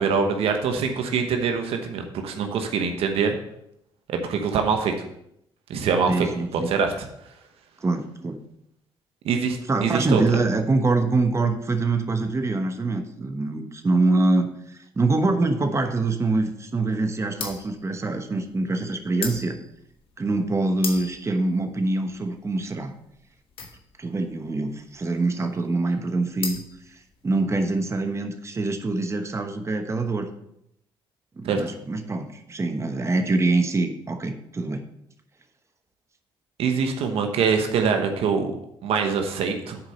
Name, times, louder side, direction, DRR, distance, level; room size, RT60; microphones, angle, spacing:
voice 1, 0.0-3.4 4.1-4.9 5.7-6.3 6.7-7.1 9.2-10.2 31.4-31.6 36.6-38.5 38.8-39.8, right 6 dB, 75° right, 5 dB, 1.0 m, -24 dB
voice 2, 6.1-6.7 7.8-8.4 9.7-19.6 20.2-22.9 24.0-26.6 26.9-30.3 31.4-34.8, right 3 dB, 30° right, 6 dB, 1.1 m, -24 dB
sound 1, 17.3-27.6, left 6 dB, 65° left, 1.3 m, -38 dB
7.3 x 4.8 x 6.5 m, 0.77 s
cardioid pair, 75°, 10 cm